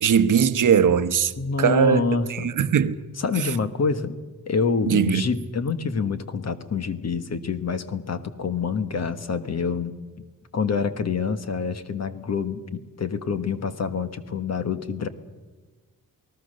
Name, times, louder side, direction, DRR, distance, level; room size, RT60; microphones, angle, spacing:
voice 1, 0.0-1.3 1.6-2.9 3.4-3.5 4.8-5.2, right 7 dB, 65° right, 0.9 m, -20 dB
voice 2, 1.4-2.5 3.2-4.2 4.4-9.9 10.5-15.1, left 5 dB, 50° left, 1.4 m, -27 dB
28.0 x 19.0 x 6.6 m
wide cardioid pair, 175°, 34 cm